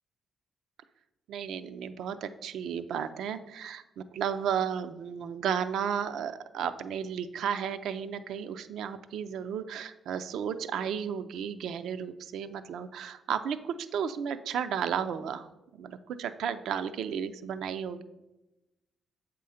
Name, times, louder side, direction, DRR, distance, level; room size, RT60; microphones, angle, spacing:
voice 1, 1.3-15.5 15.7-18.0, right 8 dB, 80° right, 11 dB, 0.4 m, -33 dB
7.5 x 3.7 x 5.6 m, 1.0 s
cardioid pair, 95°, 0 cm